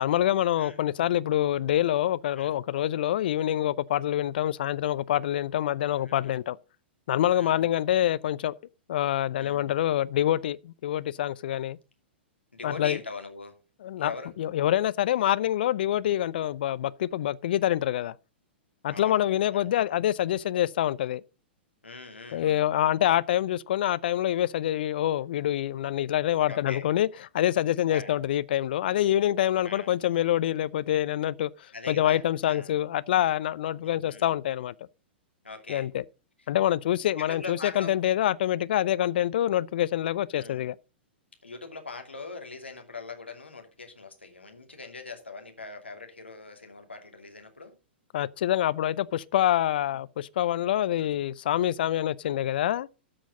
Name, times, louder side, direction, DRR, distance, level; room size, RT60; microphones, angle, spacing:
voice 1, 0.0-6.6 7.1-8.5 8.9-11.8 12.6-13.0 13.8-14.1 14.4-18.1 18.8-21.2 22.3-27.1 27.3-31.5 31.9-34.7 35.7-36.0 36.5-40.8 48.1-52.9, left 12 dB, 55° left, 0.6 m, -26 dB
voice 2, 5.8-6.3 7.3-7.6 9.4-9.6 12.5-13.5 14.0-14.3 18.9-19.2 19.5-19.7 21.8-22.5 26.5-26.8 27.9-28.1 29.6-29.9 31.7-32.7 33.7-34.3 35.4-35.9 37.2-37.9 40.3-40.6 41.4-47.7 49.9-50.0 51.0-51.1 52.2-52.3, left 4 dB, 85° left, 2.6 m, -41 dB
13.0 x 6.3 x 5.2 m
figure-of-eight pair, 105°, 6 cm